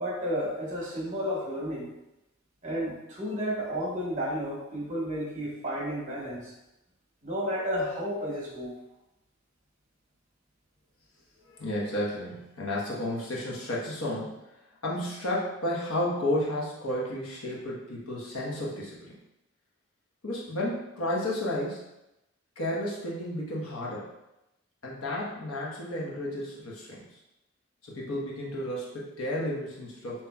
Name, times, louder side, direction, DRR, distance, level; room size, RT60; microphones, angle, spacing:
voice 1, 0.0-1.9 2.6-6.5 7.2-8.7, equal, 35° right, -4 dB, 1.2 m, -32 dB
voice 2, 11.4-14.4 14.8-19.1 20.2-21.8 22.6-24.1 24.8-27.0 27.8-30.3, left 1 dB, 90° left, -4 dB, 1.1 m, -32 dB
5.5 x 3.0 x 2.3 m, 0.90 s
head